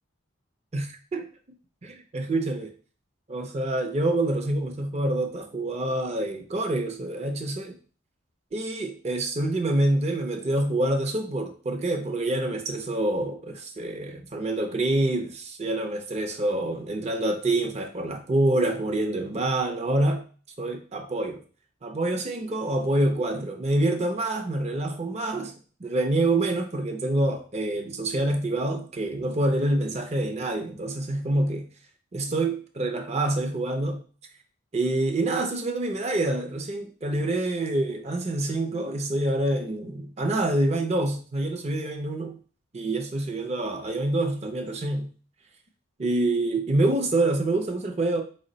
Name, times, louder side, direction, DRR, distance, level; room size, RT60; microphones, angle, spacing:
voice 1, 0.7-1.3 1.8-2.7 3.3-7.8 8.5-20.2 20.6-21.4 21.8-25.5 25.8-31.7 32.1-34.0 34.7-42.4 42.7-45.1 46.0-48.2, right 2 dB, 30° right, 5 dB, 0.5 m, -26 dB
4.5 x 2.1 x 3.8 m, 0.39 s
head